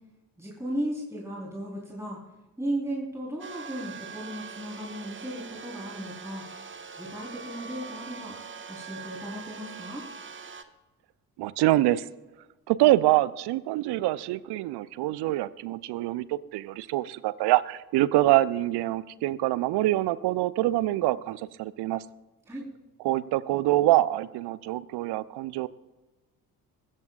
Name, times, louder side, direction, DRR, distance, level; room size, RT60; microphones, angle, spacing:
voice 1, 0.4-2.2 2.6-6.4 7.0-8.4 8.7-10.0 22.5-22.7, right 1 dB, 5° right, -4 dB, 4.2 m, -35 dB
sound 1, 3.4-10.6, right 5 dB, 25° right, 1.3 m, -42 dB
voice 2, 11.4-12.1 12.7-22.0 23.0-25.7, right 16 dB, 55° right, 18 dB, 0.7 m, -25 dB
23.5 x 14.0 x 2.5 m, 1.2 s
figure-of-eight pair, 45°, 49 cm